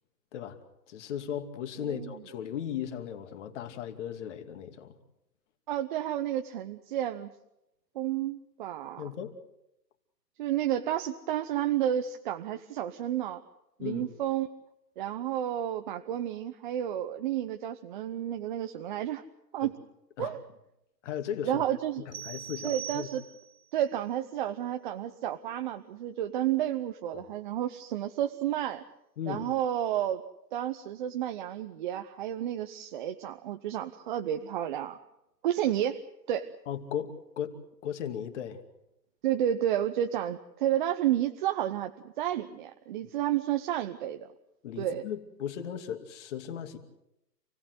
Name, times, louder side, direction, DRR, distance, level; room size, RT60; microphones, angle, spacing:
voice 1, 0.9-5.0 9.0-9.3 13.8-14.2 19.6-19.7 20.2-20.4 21.0-21.6 22.0-23.1 27.1-27.2 29.2-29.5 36.7-38.6 44.6-46.8, left 9 dB, 45° left, 7 dB, 2.6 m, -37 dB
voice 2, 1.8-2.2 5.7-7.3 7.9-9.0 10.4-13.4 13.8-14.5 15.0-19.2 19.5-19.7 20.2-20.4 21.4-22.0 22.6-23.2 23.7-28.8 29.3-30.2 30.5-35.0 35.4-36.0 36.3-36.5 39.2-44.3 44.8-45.1, right 11 dB, 30° right, 6 dB, 0.8 m, -31 dB
sound 1, 22.1-23.7, right 11 dB, 70° right, 1.6 m, -42 dB
28.5 x 18.0 x 7.9 m, 0.86 s
hypercardioid pair, 145°, 50 cm